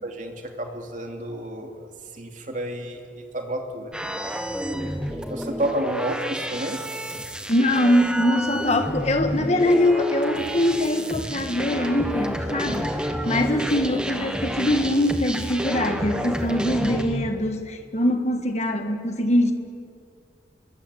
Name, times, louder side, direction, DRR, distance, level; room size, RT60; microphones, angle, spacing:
voice 1, 0.0-1.9 2.1-3.0 3.3-3.9 5.1-6.8 18.8-19.0, right 1 dB, 45° right, 3 dB, 2.9 m, -30 dB
sound 1, 3.9-17.3, equal, 5° right, 1.4 m, -30 dB
voice 2, 7.5-19.5, left 1 dB, 40° left, 6 dB, 1.5 m, -23 dB
28.0 x 22.5 x 8.5 m, 2.4 s
head